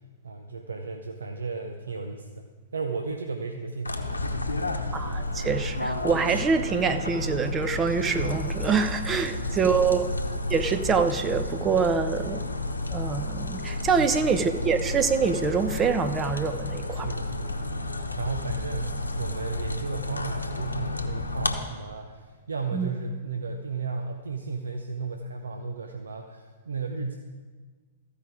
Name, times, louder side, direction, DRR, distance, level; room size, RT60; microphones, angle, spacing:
voice 1, 0.2-4.1 4.5-4.7 9.2-9.8 14.0-14.1 17.0-17.6 18.2-27.2, right 4 dB, 75° right, 4 dB, 0.7 m, -34 dB
sound 1, 3.8-21.6, left 2 dB, 90° left, 0.9 m, -31 dB
voice 2, 4.9-10.1 10.5-12.4 12.9-17.1 22.7-22.9, right 5 dB, 20° right, 8 dB, 0.7 m, -25 dB
14.5 x 5.0 x 4.9 m, 1.5 s
figure-of-eight pair, 110°, 0 cm